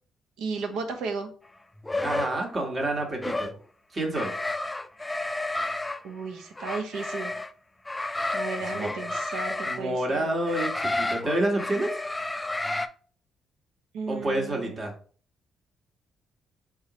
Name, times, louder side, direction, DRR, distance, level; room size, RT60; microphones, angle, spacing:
voice 1, 0.4-1.3 6.0-7.3 8.3-10.3 13.9-14.8, right 4 dB, 90° right, 5 dB, 0.7 m, -34 dB
sound 1, 1.8-2.4 3.2-3.5 4.1-6.0 6.6-7.5 7.9-9.8 10.5-12.9, left 2 dB, 15° left, 0.3 m, -31 dB
voice 2, 2.0-3.5 3.9-4.3 8.7-8.9 9.7-12.0 14.1-14.9, right 1 dB, 35° right, 2 dB, 1.4 m, -28 dB
4.1 x 3.8 x 3.0 m, 0.42 s
cardioid pair, 90°, 0 cm